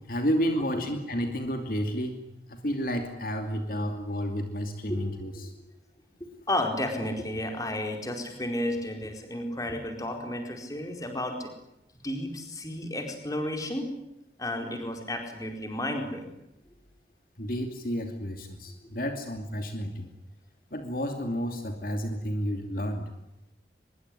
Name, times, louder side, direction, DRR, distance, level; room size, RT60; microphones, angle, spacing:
voice 1, 0.1-2.2 2.5-5.5 17.4-20.1 20.7-23.1, equal, 50° left, 5 dB, 2.6 m, -31 dB
voice 2, 6.5-11.5 12.0-13.9 14.4-16.3, left 1 dB, 20° left, 4 dB, 4.7 m, -32 dB
24.5 x 22.5 x 9.9 m, 0.87 s
head